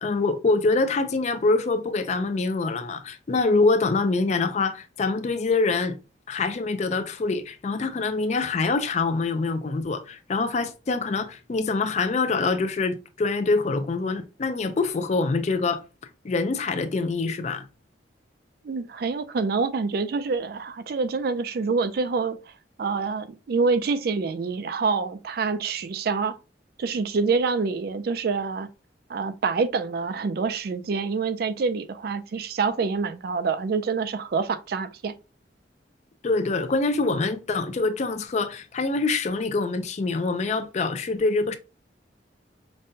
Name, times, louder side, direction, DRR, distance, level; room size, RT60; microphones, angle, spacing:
voice 1, 0.0-6.0 6.3-15.8 16.2-17.7 36.2-41.6, left 3 dB, 40° left, 0.4 m, -25 dB
voice 2, 18.6-22.4 22.8-26.4 26.8-28.7 29.1-35.2, right 4 dB, 60° right, 0.4 m, -26 dB
5.2 x 2.2 x 2.6 m
head